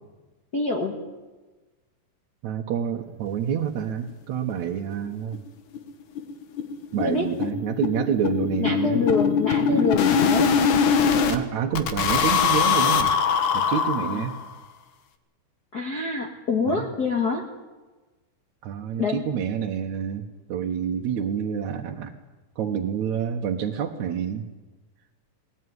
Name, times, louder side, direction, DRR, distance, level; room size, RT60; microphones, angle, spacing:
voice 1, 0.5-1.0 7.0-7.3 8.6-10.5 14.1-14.2 15.7-17.5 19.0-19.2, left 4 dB, 35° left, 1 dB, 1.9 m, -26 dB
voice 2, 2.4-5.4 6.9-9.1 11.3-13.1 13.5-14.4 16.7-16.9 18.6-22.2 22.6-24.5, right 8 dB, 65° right, 1 dB, 2.5 m, -28 dB
sound 1, 4.5-4.6 4.9-5.0 5.3-5.4 5.7-5.9 6.2-11.4 11.7-14.5, left 6 dB, 70° left, 2.9 m, -22 dB
20.0 x 19.0 x 9.6 m, 1.2 s
omnidirectional pair, 3.7 m